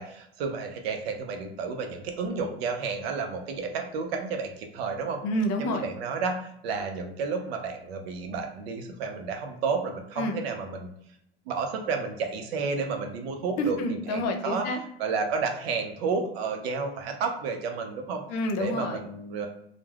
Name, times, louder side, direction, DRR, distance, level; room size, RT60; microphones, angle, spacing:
voice 1, 0.0-5.2 5.6-10.9 11.5-13.8 14.1-14.7 15.0-18.2 18.6-19.5, right 5 dB, 85° right, 4 dB, 0.5 m, -31 dB
voice 2, 5.2-5.9 10.2-10.4 13.6-14.8 18.3-19.0, left 1 dB, 55° left, 4 dB, 0.6 m, -28 dB
2.2 x 2.0 x 3.2 m, 0.73 s
hypercardioid pair, 75°, 30 cm